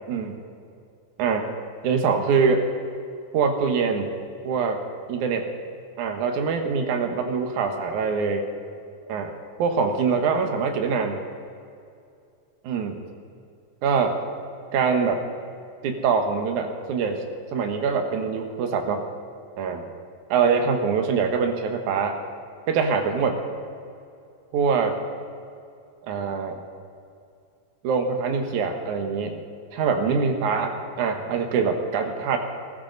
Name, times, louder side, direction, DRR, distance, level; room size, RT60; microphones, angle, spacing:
voice 1, 1.8-2.6 3.3-4.1 4.4-4.8 5.1-5.5 6.0-8.5 9.1-9.3 9.6-11.2 12.6-13.0 13.8-14.1 14.7-15.2 15.8-17.2 17.5-19.0 19.6-19.8 20.3-22.2 22.7-23.4 24.5-25.0 26.1-26.6 27.8-29.4 29.7-32.4, right 5 dB, 65° right, 5 dB, 2.6 m, -24 dB
21.0 x 14.5 x 4.0 m, 2.4 s
omnidirectional pair, 3.9 m